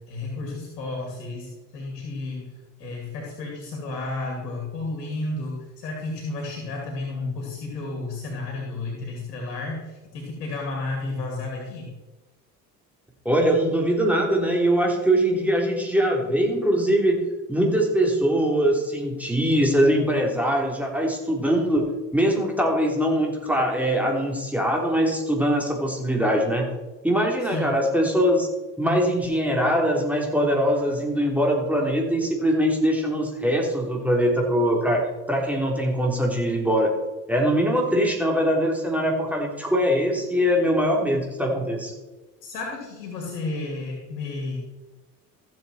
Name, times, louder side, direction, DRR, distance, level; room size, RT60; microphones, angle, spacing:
voice 1, 0.1-2.5 2.8-11.9 27.4-27.8 42.4-44.6, left 2 dB, 85° left, -1 dB, 2.5 m, -32 dB
voice 2, 13.3-17.2 17.5-21.9 22.1-26.7 27.0-28.5 28.8-36.9 37.3-41.9, equal, 5° right, 0 dB, 3.6 m, -22 dB
14.5 x 7.8 x 4.4 m, 1.1 s
hypercardioid pair, 60°, 48 cm